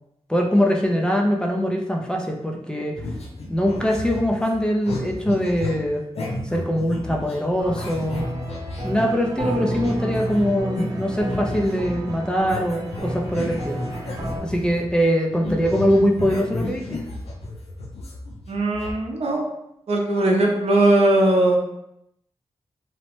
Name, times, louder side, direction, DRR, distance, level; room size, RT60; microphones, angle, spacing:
voice 1, 0.3-3.0 3.5-6.0 6.4-8.3 8.8-13.8 14.4-17.0, equal, 5° left, 1 dB, 0.4 m, -22 dB
sound 1, 2.9-15.0 15.3-18.9, left 2 dB, 70° left, 0.5 m, -33 dB
sound 2, 7.6-14.4, right 1 dB, 40° right, 0.8 m, -31 dB
voice 2, 18.5-19.5 19.9-21.6, right 1 dB, 65° right, 0 dB, 0.6 m, -19 dB
2.8 x 2.1 x 2.9 m, 0.81 s
wide cardioid pair, 115°, 11 cm